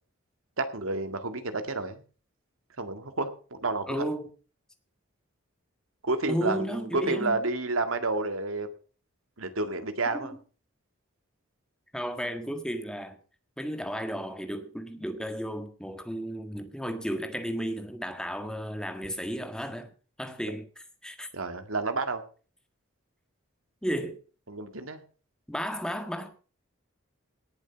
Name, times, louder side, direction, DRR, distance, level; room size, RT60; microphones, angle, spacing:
voice 1, 0.6-2.0 2.8-4.0 6.0-8.7 9.4-10.3 21.3-22.2 24.5-25.0, right 3 dB, 85° right, 1.9 m, -30 dB
voice 2, 3.9-4.3 6.3-7.4 10.1-10.2 11.9-13.2 13.6-19.9 20.2-20.7 21.0-21.3 23.8-24.2 25.5-26.3, equal, 5° left, 1.5 m, -33 dB
18.0 x 7.6 x 5.7 m
head